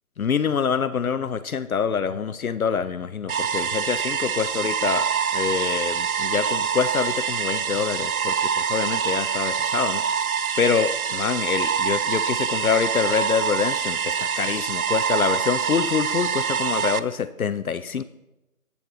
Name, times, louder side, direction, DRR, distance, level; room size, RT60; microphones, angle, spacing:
voice 1, 0.2-10.0 10.6-18.0, left 6 dB, 70° left, 11 dB, 0.5 m, -26 dB
sound 1, 3.3-17.0, right 7 dB, 75° right, 0.5 m, -25 dB
8.4 x 7.8 x 4.0 m, 0.93 s
figure-of-eight pair, 160°, 44 cm